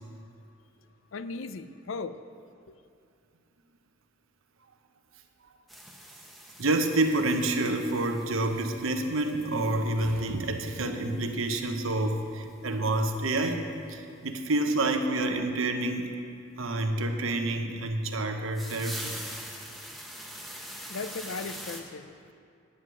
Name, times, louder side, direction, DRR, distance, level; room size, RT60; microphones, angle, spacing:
voice 1, 1.1-2.2 2.7-2.8 20.4-22.3, left 4 dB, 75° left, 0.5 m, -38 dB
sound 1, 5.7-10.8 11.1-11.2 11.5-11.6 11.8-11.9 12.4-12.5 14.3-14.4 18.5-21.8, equal, ahead, 0.8 m, -43 dB
voice 2, 6.6-16.1 16.6-19.2, right 2 dB, 85° right, 1.0 m, -28 dB
10.0 x 9.5 x 6.2 m
head